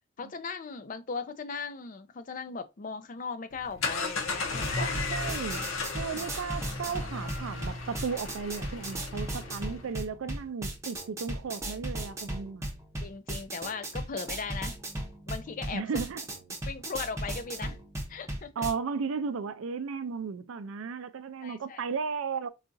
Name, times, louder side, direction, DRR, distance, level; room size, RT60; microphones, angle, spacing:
voice 1, 0.2-5.2 6.1-6.2 13.0-14.8 15.3-15.9 16.7-17.8 18.1-18.7 21.4-21.9, left 5 dB, 40° left, 0.4 m, -38 dB
sound 1, 3.5-9.9, left 3 dB, 80° left, 0.8 m, -35 dB
sound 2, 4.6-18.7, right 1 dB, 15° right, 0.7 m, -37 dB
voice 2, 4.8-5.6 6.0-12.7 15.7-16.2 18.6-22.5, right 5 dB, 80° right, 0.4 m, -35 dB
3.9 x 2.4 x 2.6 m
head